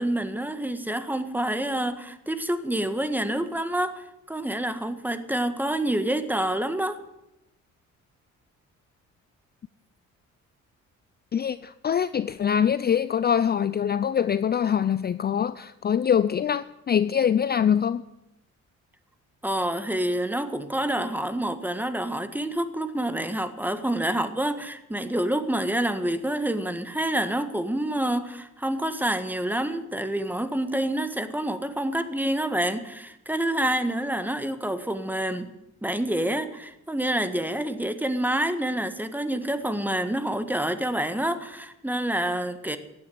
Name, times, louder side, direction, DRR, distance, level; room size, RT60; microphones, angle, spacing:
voice 1, 0.0-7.0 19.4-35.5 35.8-42.8, right 1 dB, 5° right, 10 dB, 1.6 m, -27 dB
voice 2, 11.3-18.0, left 8 dB, 35° left, 15 dB, 0.5 m, -24 dB
15.5 x 9.7 x 9.3 m, 0.91 s
cardioid pair, 90°, 30 cm